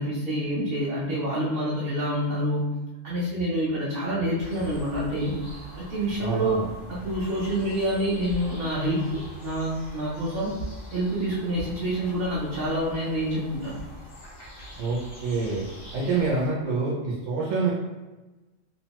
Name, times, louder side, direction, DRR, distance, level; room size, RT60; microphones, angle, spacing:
voice 1, 0.0-5.4 5.7-6.6 7.0-10.5 10.9-13.8, equal, 55° right, -6 dB, 0.7 m, -27 dB
sound 1, 4.4-16.5, right 1 dB, 90° left, 1.2 m, -42 dB
voice 2, 6.2-6.7 14.8-15.6 15.9-17.7, right 4 dB, 85° right, -5 dB, 1.0 m, -26 dB
2.9 x 2.1 x 2.8 m, 1.2 s
omnidirectional pair, 1.3 m